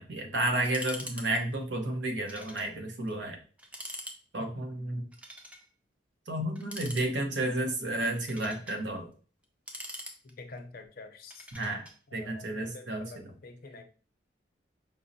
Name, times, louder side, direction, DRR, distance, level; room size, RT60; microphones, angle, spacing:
voice 1, 0.0-3.4 4.3-5.0 6.3-9.1 11.5-11.8 12.1-13.3, right 1 dB, 75° right, 3 dB, 0.8 m, -32 dB
sound 1, 0.6-1.3 1.5-1.6 2.3-2.7 3.1-3.2 3.6-4.2 5.1-5.6 6.5-7.4 8.0-8.8 9.4-10.6 11.3-12.0, equal, 10° right, 0.5 m, -43 dB
voice 2, 10.2-11.5 12.1-13.8, left 3 dB, 55° left, 5 dB, 0.5 m, -47 dB
5.3 x 2.0 x 2.6 m, 0.39 s
head